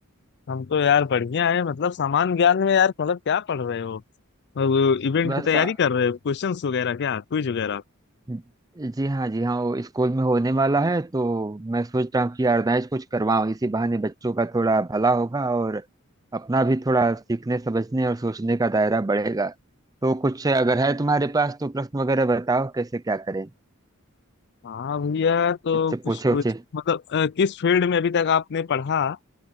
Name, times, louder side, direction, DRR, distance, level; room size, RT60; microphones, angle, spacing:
voice 1, 0.5-4.0 4.6-7.8 24.6-26.4 26.7-29.2, left 6 dB, 55° left, 0.4 m, -23 dB
voice 2, 5.2-5.7 8.3-8.4 8.8-15.8 16.3-19.5 20.0-23.5 25.9-26.6, right 2 dB, 15° right, 0.5 m, -24 dB
head